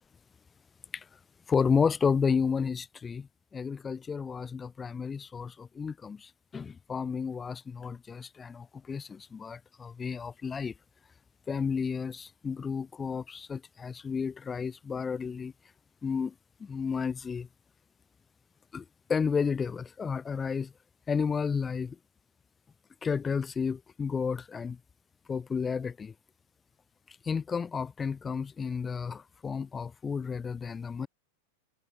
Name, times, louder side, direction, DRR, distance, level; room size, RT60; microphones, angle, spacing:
voice 1, 1.5-10.7 11.5-15.5 16.0-16.3 16.6-17.5 18.7-18.8 19.1-20.7 21.1-22.0 23.0-24.8 25.3-26.1 27.3-31.1, left 6 dB, 15° left, 0.4 m, -31 dB
open air
figure-of-eight pair, 90°, 0 cm